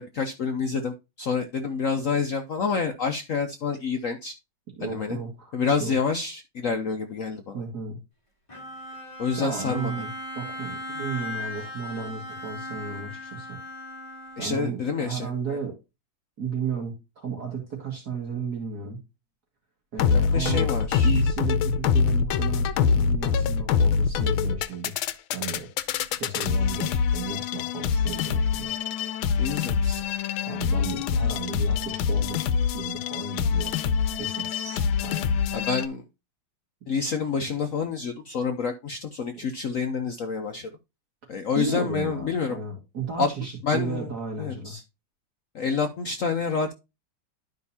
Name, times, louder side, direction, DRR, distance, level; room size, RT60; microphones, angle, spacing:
voice 1, 0.0-4.3 4.8-5.2 5.5-7.6 9.2-9.9 14.4-15.6 20.1-21.2 29.4-30.0 35.5-36.0 36.9-40.7 41.3-42.6 43.2-43.3 43.6-44.1 44.4-44.8 45.5-46.7, left 5 dB, 65° left, 6 dB, 0.8 m, -28 dB
voice 2, 4.8-5.5 5.8-6.0 7.5-8.0 9.4-13.6 14.4-15.8 16.4-19.0 19.9-20.7 21.0-25.7 26.1-28.7 30.5-33.7 34.2-35.3 41.6-44.7, right 5 dB, 50° right, -1 dB, 2.4 m, -34 dB
Bowed string instrument, 8.5-14.9, left 1 dB, 15° left, 2.7 m, -38 dB
sound 1, 20.0-35.9, left 6 dB, 90° left, 1.5 m, -24 dB
12.0 x 5.3 x 2.7 m, 0.25 s
omnidirectional pair, 2.2 m